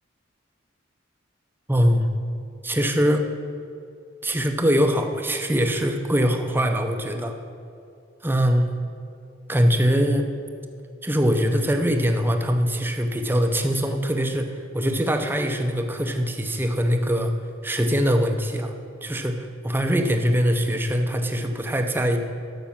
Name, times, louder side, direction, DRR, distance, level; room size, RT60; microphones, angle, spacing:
voice 1, 1.7-2.1 2.6-3.3 4.2-7.4 8.2-8.7 9.5-10.3 11.0-17.3 17.6-18.7 19.0-22.2, equal, 10° right, 5 dB, 0.6 m, -22 dB
11.5 x 6.1 x 7.2 m, 2.5 s
head